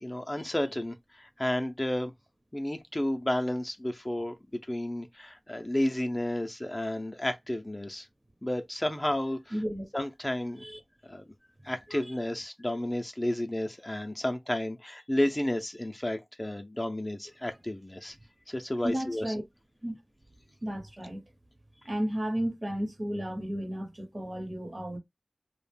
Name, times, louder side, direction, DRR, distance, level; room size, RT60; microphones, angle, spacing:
voice 1, 0.0-2.1 2.5-4.3 4.7-8.1 8.4-9.5 9.9-10.6 11.0-11.2 11.6-18.2 18.5-19.3, left 1 dB, 20° left, 0.4 m, -32 dB
voice 2, 9.5-9.9 10.6-10.8 11.9-12.0 18.8-19.4 19.8-20.0 20.6-21.2 21.8-25.0, equal, 45° right, 0.9 m, -33 dB
2.4 x 2.1 x 3.3 m
wide cardioid pair, 60°, 0 cm